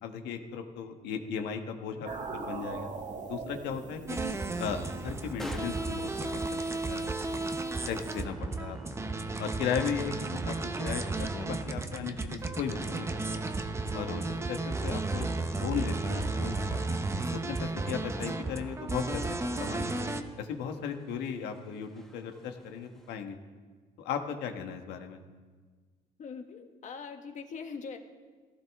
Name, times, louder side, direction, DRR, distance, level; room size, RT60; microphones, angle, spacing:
voice 1, 0.0-2.9 3.3-4.2 4.6-6.6 6.9-7.4 7.9-8.8 9.4-10.1 10.4-13.5 13.9-17.0 17.3-19.2 19.6-20.0 20.4-23.4 24.0-25.2, left 7 dB, 80° left, 5 dB, 1.4 m, -36 dB
sound 1, 2.1-8.2, right 4 dB, 45° right, 1.5 m, -43 dB
sound 2, 4.1-20.2, right 2 dB, 15° right, 0.9 m, -33 dB
sound 3, 4.6-23.2, left 1 dB, 5° left, 1.3 m, -52 dB
voice 2, 26.2-28.0, left 5 dB, 45° left, 5 dB, 1.5 m, -42 dB
16.0 x 15.0 x 3.6 m, 1.4 s
cardioid pair, 110°, 17 cm